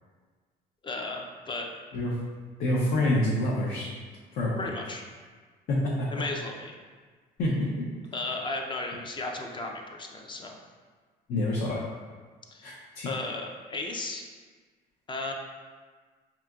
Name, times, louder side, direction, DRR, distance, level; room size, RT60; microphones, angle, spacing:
voice 1, 0.8-1.7 4.6-5.0 6.1-6.7 8.1-10.6 12.5-12.7 13.0-14.2 15.1-15.3, left 3 dB, 30° left, 1 dB, 0.5 m, -35 dB
voice 2, 2.6-3.9 4.3-4.5 5.7-6.1 7.4-7.9 11.3-11.8 12.6-13.1, left 1 dB, 65° left, -6 dB, 0.8 m, -27 dB
4.9 x 2.8 x 2.3 m, 1.5 s
cardioid pair, 110°, 17 cm